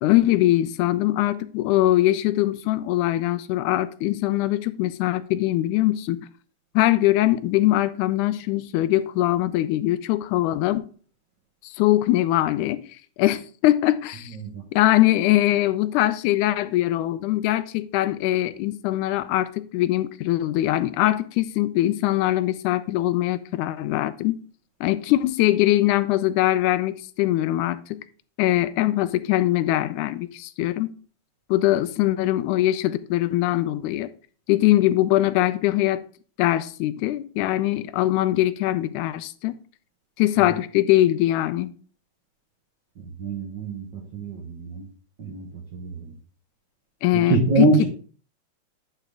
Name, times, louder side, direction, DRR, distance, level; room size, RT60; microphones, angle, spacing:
voice 1, 0.0-6.3 6.8-10.9 11.6-12.9 13.2-14.4 14.7-24.4 24.8-28.0 28.4-30.9 31.5-34.1 34.5-36.0 36.4-39.6 40.2-41.7 47.0-47.8, left 15 dB, 85° left, 2.0 m, -22 dB
voice 2, 43.2-43.8 44.1-44.7 45.2-45.4 47.3-47.8, right 2 dB, 60° right, 1.1 m, -22 dB
10.0 x 4.4 x 3.6 m
omnidirectional pair, 3.5 m